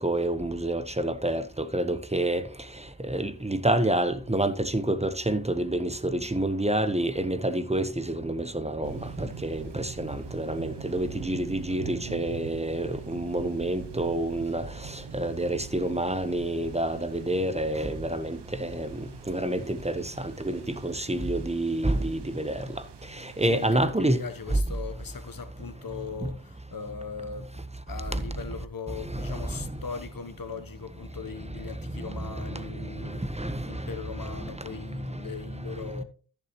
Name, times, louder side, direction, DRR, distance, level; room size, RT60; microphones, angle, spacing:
voice 1, 0.0-2.5 2.7-22.8 23.1-24.6 26.2-26.3 28.1-28.2 29.0-29.8 31.9-36.0, right 1 dB, 15° right, 1.1 m, -29 dB
sound 1, 8.8-23.8, right 8 dB, 85° right, 0.7 m, -43 dB
voice 2, 23.4-27.6 27.9-33.3 33.7-36.0, left 5 dB, 55° left, 1.0 m, -39 dB
14.0 x 6.9 x 3.1 m
cardioid pair, 45°, 40 cm